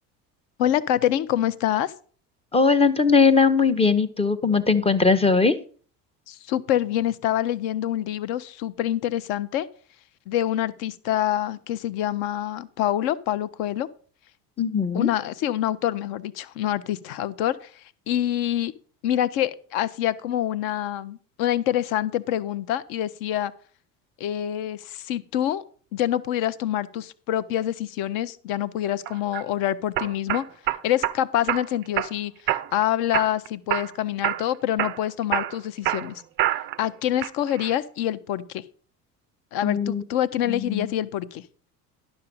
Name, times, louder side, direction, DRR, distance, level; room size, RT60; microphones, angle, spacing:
voice 1, 0.6-1.9 6.3-9.7 10.3-13.9 14.9-18.7 19.0-23.5 24.2-25.6 25.9-30.5 30.8-36.2 36.8-38.6 39.5-41.4, left 12 dB, 50° left, 17 dB, 0.7 m, -26 dB
voice 2, 2.5-5.6 14.6-15.1 39.6-40.0 40.5-40.9, left 4 dB, 10° left, 13 dB, 0.6 m, -20 dB
sound 1, 29.1-29.4 30.0-31.2 31.5-32.1 32.5-32.8 33.1-33.9 34.2-34.5 34.8-36.8 37.2-37.7, right 13 dB, 25° right, 0.3 m, -26 dB
11.5 x 6.1 x 5.3 m, 0.42 s
figure-of-eight pair, 65°, 48 cm